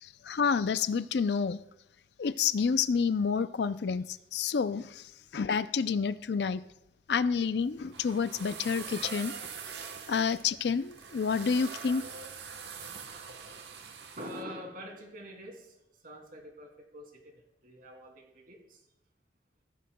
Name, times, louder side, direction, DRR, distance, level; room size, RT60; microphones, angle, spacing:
voice 1, 0.0-1.6 2.2-6.6 7.1-9.3 10.1-12.0, left 6 dB, 70° left, 14 dB, 0.4 m, -29 dB
sound 1, 7.6-14.4, right 6 dB, 75° right, 1.1 m, -44 dB
voice 2, 14.2-15.8 16.0-18.8, equal, 55° right, 2 dB, 2.7 m, -45 dB
15.5 x 15.0 x 2.2 m, 0.86 s
head